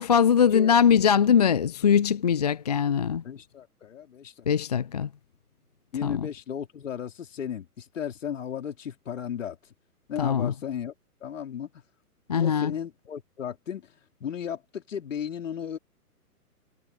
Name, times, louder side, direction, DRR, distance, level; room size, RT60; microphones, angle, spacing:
voice 1, 0.0-3.2 4.5-5.1 6.0-6.3 10.2-10.5 12.3-12.7, left 7 dB, 25° left, 0.5 m, -21 dB
voice 2, 3.2-4.5 5.9-9.6 10.1-10.9 11.2-11.7 12.4-15.8, left 8 dB, 50° left, 4.5 m, -35 dB
figure-of-eight pair, 125°, 47 cm